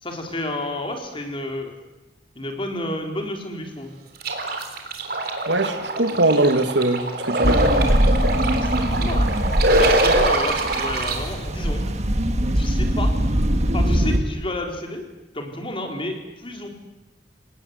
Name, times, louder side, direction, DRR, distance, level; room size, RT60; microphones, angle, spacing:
voice 1, 0.0-1.7 2.4-3.9 8.5-9.3 9.7-11.8 12.5-13.1 13.7-15.1 15.3-16.7, left 1 dB, 30° left, 3 dB, 3.9 m, -31 dB
sound 1, 4.2-11.2, right 1 dB, 60° right, 3.7 m, -23 dB
voice 2, 5.5-7.6, right 2 dB, 85° right, 8 dB, 2.3 m, -21 dB
sound 2, 7.4-14.2, equal, 40° right, 1.9 m, -22 dB
29.0 x 18.5 x 8.2 m, 1.1 s
head